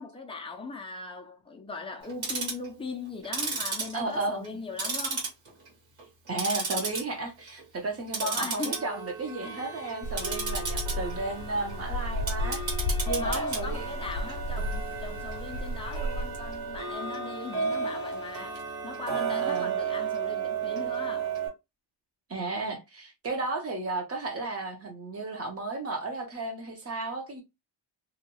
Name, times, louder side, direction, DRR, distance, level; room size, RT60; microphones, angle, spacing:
voice 1, 0.0-5.3 8.2-8.8 13.2-18.6 18.8-21.3, left 4 dB, 15° left, 0.3 m, -39 dB
Tick-tock, 2.0-2.7 3.2-4.5 4.8-5.7 6.0-7.0 7.4-7.6 8.1-21.5, right 5 dB, 90° right, 1.5 m, -33 dB
voice 2, 3.9-4.4 6.3-13.9 19.4-19.8 22.3-27.4, right 2 dB, 30° right, 0.8 m, -34 dB
sound 1, 10.0-16.9, left 1 dB, 90° left, 0.5 m, -34 dB
2.7 x 2.2 x 2.9 m
wide cardioid pair, 170°, 45 cm